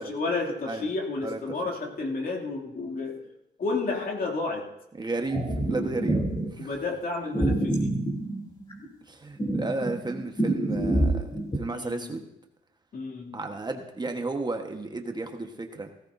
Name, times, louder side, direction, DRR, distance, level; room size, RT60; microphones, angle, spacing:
voice 1, 0.0-3.3 3.6-4.7 6.6-8.0 11.7-12.0 12.9-13.4, left 3 dB, 50° left, 1 dB, 2.7 m, -31 dB
voice 2, 5.0-6.2 6.5-6.7 9.1-12.2 13.3-15.9, right 3 dB, 20° right, 4 dB, 1.2 m, -33 dB
sound 1, 5.3-6.5 7.3-8.9 9.4-11.6, right 1 dB, 25° left, 3.0 m, -27 dB
17.0 x 15.0 x 2.7 m, 0.85 s
cardioid pair, 90°, 20 cm